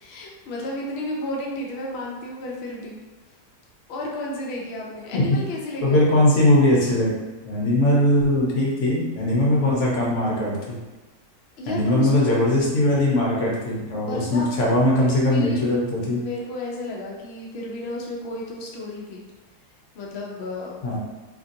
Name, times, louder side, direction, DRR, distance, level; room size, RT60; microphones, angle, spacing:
voice 1, 0.0-3.0 3.9-6.3 11.6-12.3 14.1-14.5 14.9-15.7 16.1-19.2 19.9-21.0, left 1 dB, 85° left, -3 dB, 0.5 m, -32 dB
voice 2, 5.8-7.1 7.5-10.6 11.7-16.2 20.8-21.0, left 1 dB, 55° left, -4 dB, 0.9 m, -20 dB
2.9 x 2.6 x 2.6 m, 1.2 s
omnidirectional pair, 1.7 m